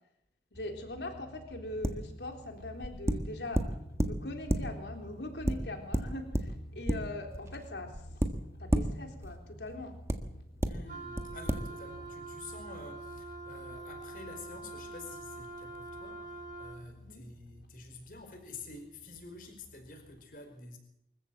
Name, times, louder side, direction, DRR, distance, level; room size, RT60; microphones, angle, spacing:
voice 1, 0.5-3.6 4.1-8.0 8.6-10.0 16.9-17.2, left 1 dB, 85° left, 4 dB, 3.6 m, -41 dB
sound 1, 0.5-20.2, equal, 65° left, 4.4 m, -51 dB
sound 2, 1.8-2.2 2.8-5.0 5.4-7.5 7.9-9.3 10.1-10.2 10.6-10.7 11.2-11.3 11.5-11.6, equal, 15° right, 1.5 m, -32 dB
voice 2, 10.6-20.8, left 3 dB, 50° left, 5 dB, 5.2 m, -49 dB
Wind instrument woodwind instrument, 10.9-16.9, right 2 dB, 50° right, 5.7 m, -45 dB
25.0 x 14.5 x 7.8 m, 0.78 s
head